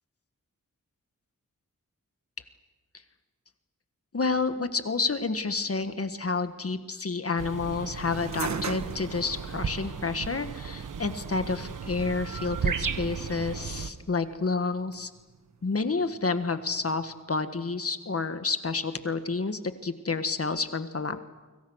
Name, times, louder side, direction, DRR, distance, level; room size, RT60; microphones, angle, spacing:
voice 1, 4.1-15.1 15.6-21.2, left 4 dB, 50° left, 9 dB, 1.7 m, -29 dB
sound 1, 7.4-13.9, right 6 dB, 90° right, 1.3 m, -35 dB
sound 2, 8.0-17.2, right 5 dB, 60° right, 1.5 m, -42 dB
29.5 x 25.5 x 6.4 m, 1.2 s
wide cardioid pair, 100°, 31 cm